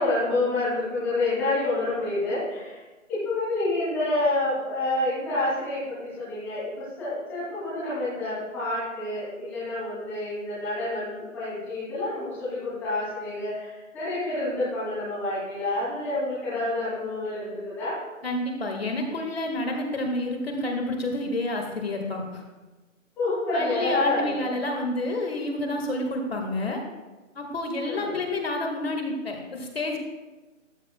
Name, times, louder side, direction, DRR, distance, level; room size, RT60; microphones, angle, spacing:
voice 1, 0.0-2.8 3.1-18.0 23.2-24.4 27.8-28.2, left 2 dB, 5° left, -13 dB, 2.6 m, -28 dB
voice 2, 18.2-22.4 23.5-26.8 27.4-30.0, left 2 dB, 50° left, 2 dB, 1.8 m, -29 dB
14.0 x 10.5 x 2.3 m, 1.2 s
hypercardioid pair, 175°, 40 cm